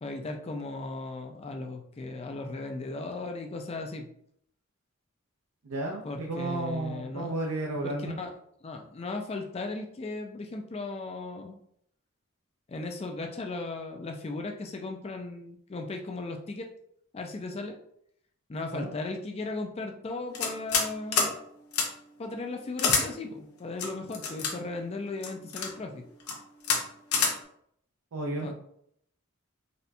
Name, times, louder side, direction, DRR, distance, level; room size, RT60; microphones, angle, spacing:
voice 1, 0.0-4.1 6.0-7.3 7.8-8.3 8.6-11.6 12.7-16.7 17.1-17.8 18.5-21.3 22.2-26.0 28.4-28.5, left 3 dB, 30° left, 3 dB, 0.4 m, -36 dB
voice 2, 5.6-8.2 18.7-18.9 28.1-28.5, right 2 dB, 90° right, -1 dB, 0.5 m, -33 dB
sound 1, 20.3-20.9 21.1-21.3 21.7-21.9 22.8-23.0 23.8-24.5 25.2-25.7 26.2-26.3 26.6-26.8 27.1-27.3, left 5 dB, 85° left, 0.7 m, -26 dB
4.1 x 2.2 x 2.6 m, 0.70 s
head